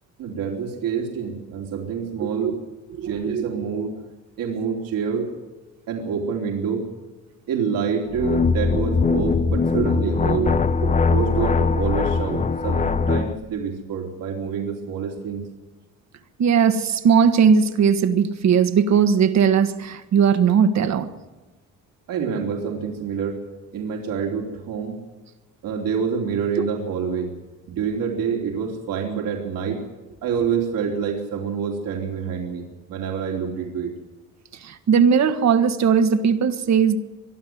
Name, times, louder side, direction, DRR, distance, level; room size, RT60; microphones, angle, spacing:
voice 1, 0.2-2.6 3.0-4.0 4.4-5.3 5.9-6.9 7.5-10.5 11.1-15.4 22.1-23.4 23.7-25.0 25.6-27.3 27.7-29.8 30.2-33.9, right 6 dB, 80° right, 1 dB, 3.4 m, -27 dB
voice 2, 2.2-2.5 3.0-3.4 9.7-9.9 10.2-11.0 16.4-21.1 34.6-37.0, right 7 dB, 55° right, 9 dB, 1.6 m, -19 dB
sound 1, 8.1-13.4, left 4 dB, 20° left, 0.7 m, -21 dB
23.0 x 12.5 x 9.4 m, 1.2 s
cardioid pair, 120°, 33 cm